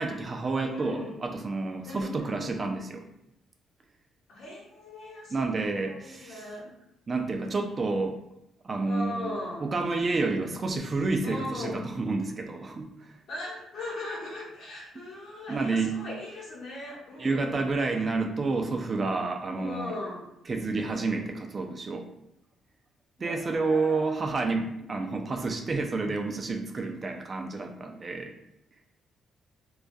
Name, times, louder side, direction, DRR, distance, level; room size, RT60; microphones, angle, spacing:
voice 1, 0.0-3.0 5.3-6.4 7.1-8.1 8.6-12.9 15.5-16.0 17.2-19.9 20.5-22.1 23.2-28.3, right 3 dB, 35° right, 4 dB, 0.3 m, -29 dB
voice 2, 0.6-1.2 1.8-2.6 4.3-6.7 8.9-9.7 11.2-11.8 13.3-17.7 19.5-20.3 23.2-24.2, left 1 dB, 70° left, -4 dB, 0.9 m, -39 dB
2.3 x 2.2 x 2.5 m, 0.80 s
cardioid pair, 90°, 0 cm